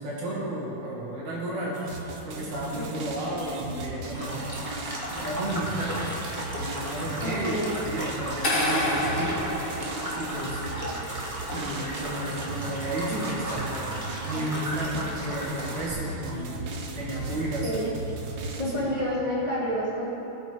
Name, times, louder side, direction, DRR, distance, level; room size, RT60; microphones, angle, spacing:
voice 1, 0.0-1.8 2.2-4.5 4.9-6.1 6.5-8.5 8.9-9.4 10.1-10.6 11.5-13.9 14.2-17.7 18.8-18.9, right 1 dB, 70° right, -5 dB, 3.7 m, -33 dB
sound 1, 1.7-18.6, right 3 dB, 55° right, 1.4 m, -37 dB
sound 2, 4.1-15.9, right 1 dB, 15° right, 1.3 m, -35 dB
voice 2, 7.2-7.7 17.6-17.9 18.6-20.1, equal, 10° left, -9 dB, 3.1 m, -29 dB
sound 3, 8.4-10.5, left 1 dB, 35° left, 3.6 m, -27 dB
21.0 x 8.2 x 4.9 m, 2.9 s
omnidirectional pair, 3.4 m